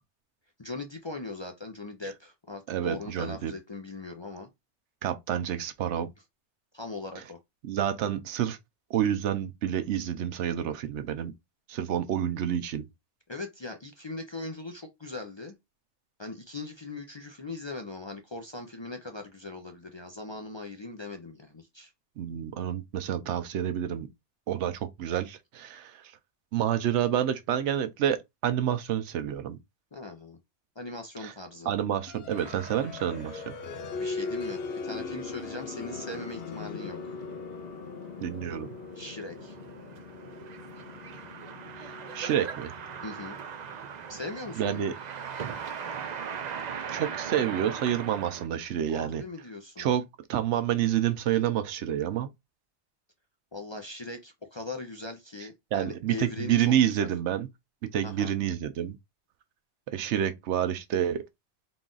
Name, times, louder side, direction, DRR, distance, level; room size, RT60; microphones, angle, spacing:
voice 1, 0.6-4.5 6.7-7.4 13.3-15.5 16.2-21.9 29.9-30.4 30.8-31.7 34.0-37.2 38.9-39.6 43.0-43.4 44.1-44.9 48.9-49.9 53.5-57.1 58.0-58.3, left 2 dB, 35° left, 0.5 m, -40 dB
voice 2, 2.7-3.5 5.0-6.1 7.6-8.6 8.9-11.3 11.7-12.9 22.2-24.1 24.5-26.1 26.5-29.6 31.2-31.3 31.7-33.5 38.2-38.7 41.8-42.7 44.6-44.9 46.9-49.2 49.8-52.3 55.7-57.5 57.8-59.0 59.9-61.2, right 10 dB, 90° right, 0.9 m, -28 dB
sound 1, 32.1-44.6, left 4 dB, 65° left, 0.8 m, -40 dB
sound 2, 32.3-48.5, right 7 dB, 55° right, 0.5 m, -41 dB
3.9 x 2.4 x 3.8 m
omnidirectional pair, 1.2 m